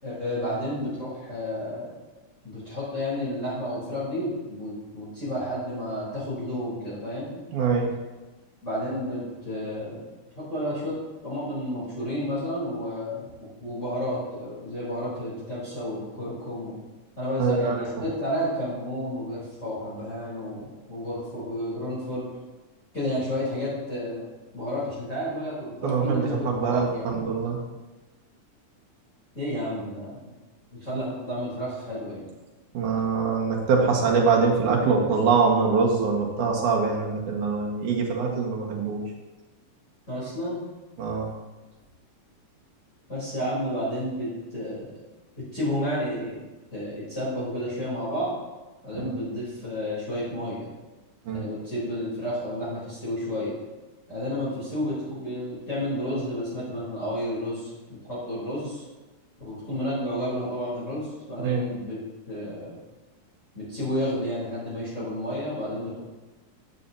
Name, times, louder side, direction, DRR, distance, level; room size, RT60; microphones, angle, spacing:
voice 1, 0.0-1.9 2.4-7.4 8.6-10.0 10.4-11.0 11.2-13.3 13.6-16.8 17.2-22.3 22.9-24.3 24.5-27.1 29.3-30.2 30.7-32.2 40.1-40.6 43.1-45.0 45.4-46.4 46.7-48.4 48.8-50.7 51.3-53.6 54.1-58.8 59.4-62.0 62.3-62.8 63.5-66.0, equal, 25° left, -10 dB, 3.9 m, -31 dB
voice 2, 7.5-7.9 17.4-17.8 25.8-27.6 32.7-39.0 41.0-41.3 51.3-51.4 61.4-61.6, right 5 dB, 90° right, -1 dB, 3.1 m, -23 dB
13.5 x 9.5 x 2.8 m, 1.2 s
omnidirectional pair, 3.5 m